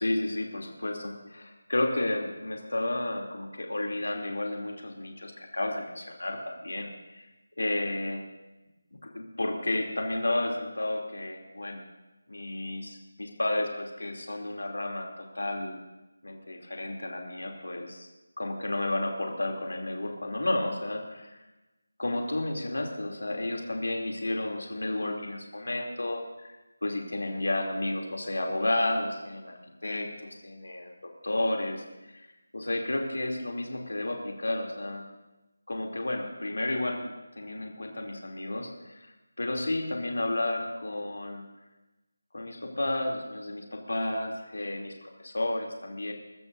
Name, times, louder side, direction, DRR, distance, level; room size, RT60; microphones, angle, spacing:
voice 1, 0.0-7.3 7.6-8.2 9.0-11.8 12.3-15.1 15.3-15.8 16.2-18.1 18.4-21.4 22.0-26.5 26.8-29.5 29.8-30.1 30.4-31.8 32.1-32.2 32.5-35.0 35.7-39.1 39.4-41.4 42.3-46.1, left 1 dB, 85° left, 0 dB, 3.1 m, -32 dB
22.5 x 14.0 x 2.7 m, 1.0 s
figure-of-eight pair, 180°, 0 cm